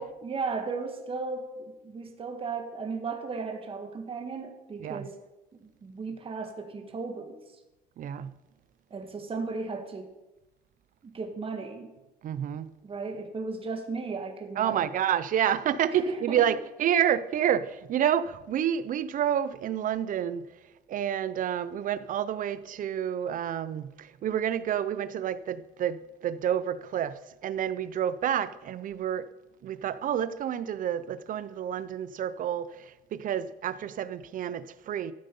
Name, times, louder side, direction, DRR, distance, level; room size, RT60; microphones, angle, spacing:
voice 1, 0.0-5.2 5.6-7.4 8.9-10.1 11.0-11.9 12.8-14.9 15.9-16.5, right 4 dB, 35° right, 1.7 m, -35 dB
voice 2, 8.0-8.3 12.2-12.7 14.6-20.5 20.9-29.3 29.6-35.1, right 9 dB, 55° right, 0.6 m, -29 dB
13.5 x 7.6 x 5.4 m
cardioid pair, 110°, 17 cm